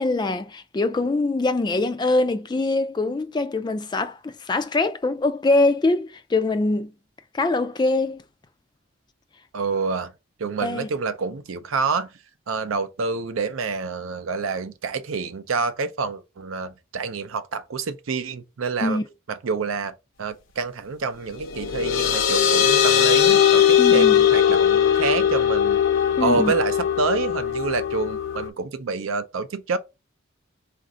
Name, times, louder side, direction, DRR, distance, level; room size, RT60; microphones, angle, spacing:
voice 1, 0.0-6.9 7.3-8.2 10.6-10.9 18.8-19.1 23.8-24.3 26.2-26.5, left 2 dB, 20° left, 0.3 m, -23 dB
voice 2, 9.5-10.1 10.4-12.1 12.5-19.0 19.3-19.9 20.2-25.8 26.2-29.8, right 4 dB, 80° right, 0.5 m, -27 dB
sound 1, 21.3-28.5, left 9 dB, 80° left, 0.7 m, -19 dB
4.1 x 2.5 x 3.7 m
head